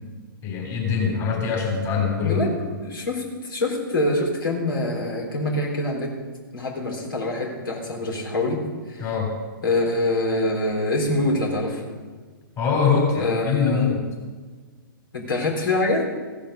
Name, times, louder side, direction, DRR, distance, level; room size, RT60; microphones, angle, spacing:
voice 1, 0.4-2.7 9.0-9.3 12.6-14.0, left 5 dB, 25° left, 0 dB, 3.3 m, -23 dB
voice 2, 2.8-6.1 6.5-8.6 8.9-9.1 9.6-11.8 13.2-14.0 15.1-16.1, left 2 dB, 75° left, -1 dB, 3.9 m, -25 dB
15.5 x 8.8 x 6.6 m, 1.5 s
hypercardioid pair, 125°, 12 cm